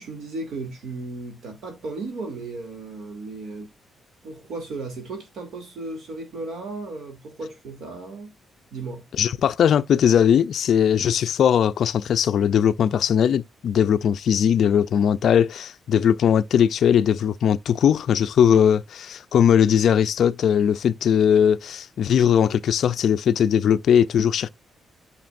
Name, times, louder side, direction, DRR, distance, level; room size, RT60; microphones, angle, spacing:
voice 1, 0.0-3.7 4.2-8.3 8.7-9.0 18.5-18.6, right 3 dB, 65° right, 2.7 m, -35 dB
voice 2, 9.2-24.5, left 8 dB, 55° left, 0.4 m, -19 dB
9.1 x 5.8 x 2.5 m
cardioid pair, 170°, 0 cm